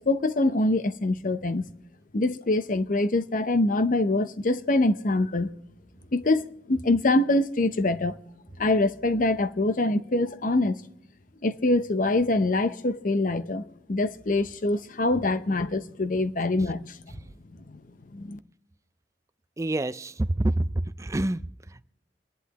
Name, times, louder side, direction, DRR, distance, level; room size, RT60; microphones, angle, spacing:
voice 1, 0.0-1.7 2.1-5.5 6.1-8.1 8.6-10.8 11.4-17.0 17.7-17.8 18.1-18.4, left 2 dB, 50° left, 0.7 m, -24 dB
voice 2, 19.6-20.6 21.0-21.4, right 1 dB, 15° right, 0.4 m, -26 dB
28.0 x 11.0 x 2.9 m
head